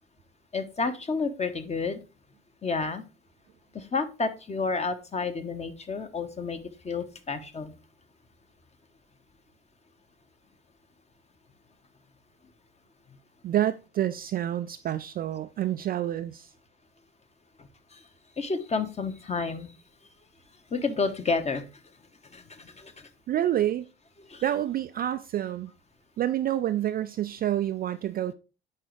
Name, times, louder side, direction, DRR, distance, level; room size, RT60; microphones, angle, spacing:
voice 1, 0.5-2.0 2.6-3.0 3.7-6.6 6.8-7.7 18.4-19.7 20.7-21.6 22.3-23.1 24.3-24.4, left 4 dB, 20° left, 1.0 m, -30 dB
voice 2, 13.4-16.5 23.3-23.8 24.4-25.7 26.2-28.3, right 12 dB, 30° right, 0.4 m, -28 dB
10.0 x 3.9 x 3.1 m
hypercardioid pair, 65°, 30 cm